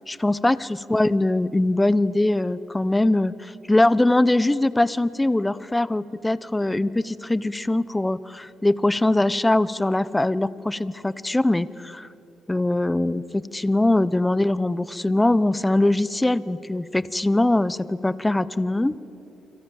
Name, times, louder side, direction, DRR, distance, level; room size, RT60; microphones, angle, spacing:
voice 1, 0.1-12.1 12.5-19.0, left 2 dB, 10° left, 17 dB, 0.9 m, -22 dB
28.5 x 26.0 x 7.2 m, 3.0 s
cardioid pair, 90°, 0 cm